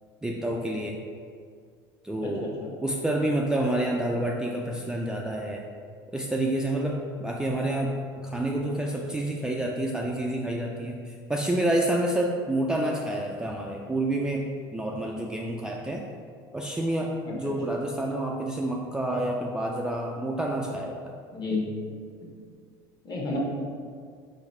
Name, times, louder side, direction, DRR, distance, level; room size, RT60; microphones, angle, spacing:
voice 1, 0.2-1.0 2.0-2.5 2.8-5.6 6.1-7.9 8.2-14.5 14.7-16.0 16.5-21.2, right 1 dB, 5° right, -1 dB, 0.3 m, -28 dB
voice 2, 2.2-2.7 17.2-17.4 21.3-21.7 22.2-22.3 23.0-23.4, left 3 dB, 35° left, -2 dB, 1.0 m, -31 dB
3.9 x 2.5 x 4.2 m, 2.1 s
supercardioid pair, 100°, 11 cm